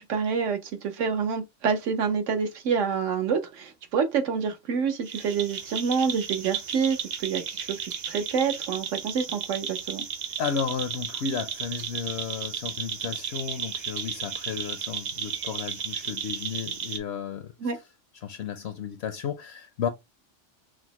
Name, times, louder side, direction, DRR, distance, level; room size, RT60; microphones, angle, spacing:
voice 1, 0.0-7.8 8.1-10.0 17.6-17.8, right 6 dB, 80° right, 1.2 m, -27 dB
sound 1, 5.1-17.0, right 7 dB, 50° right, 0.6 m, -34 dB
voice 2, 10.4-17.7 18.1-19.9, left 7 dB, 65° left, 0.7 m, -33 dB
6.2 x 2.1 x 2.9 m
omnidirectional pair, 1.3 m